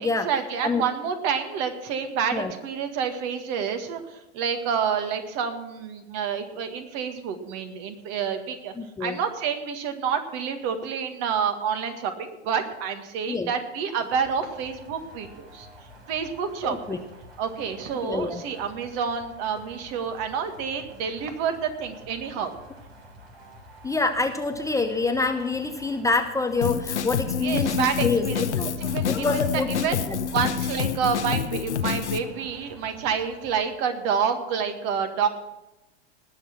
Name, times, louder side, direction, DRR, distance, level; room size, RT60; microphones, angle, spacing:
voice 1, 0.0-8.7 9.0-15.7 16.1-17.0 17.4-22.5 27.4-30.0 30.3-35.3, right 7 dB, 45° right, 7 dB, 1.9 m, -28 dB
voice 2, 8.8-9.2 13.3-13.5 16.6-17.0 18.0-18.4 23.8-28.7 29.1-30.2, left 3 dB, 10° left, 6 dB, 0.8 m, -26 dB
sound 1, 14.0-33.8, equal, 75° right, 4.0 m, -49 dB
Drum kit, 26.6-32.2, left 7 dB, 80° left, 1.0 m, -27 dB
19.5 x 6.7 x 5.9 m, 0.98 s
figure-of-eight pair, 90°, 34 cm